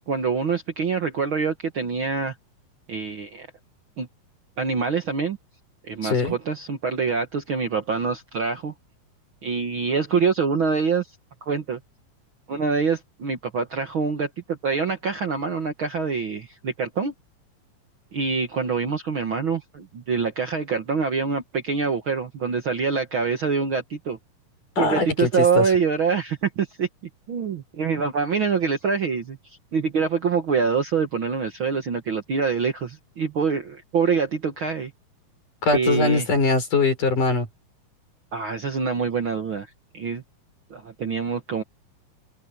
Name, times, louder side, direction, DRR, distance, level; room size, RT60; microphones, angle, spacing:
voice 1, 0.0-2.4 2.9-3.5 4.0-4.1 4.6-5.4 5.8-8.7 9.4-11.1 11.5-11.8 12.5-17.1 18.1-24.2 24.8-26.9 27.3-34.9 35.7-36.3 38.3-39.7 39.9-40.2 40.7-41.6, right 5 dB, 50° right, 1.7 m, -25 dB
voice 2, 6.0-6.4 24.8-25.7 35.6-37.5, left 3 dB, 65° left, 8.1 m, -22 dB
open air
omnidirectional pair, 3.9 m